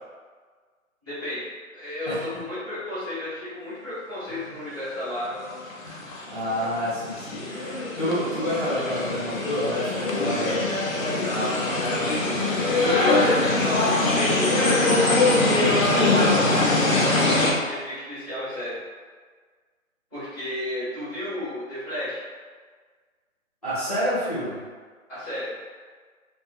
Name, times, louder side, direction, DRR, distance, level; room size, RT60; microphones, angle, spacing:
voice 1, 1.0-1.4 1.7-5.5 11.0-12.3 12.7-15.2 15.7-18.8 20.1-22.2 25.1-25.5, left 1 dB, 10° right, -21 dB, 0.7 m, -32 dB
sound 1, 5.4-17.5, left 2 dB, 70° left, 0.7 m, -23 dB
voice 2, 5.8-10.6 23.6-24.6, equal, 30° left, -13 dB, 0.6 m, -29 dB
2.3 x 2.2 x 2.6 m, 1.5 s
figure-of-eight pair, 160°, 41 cm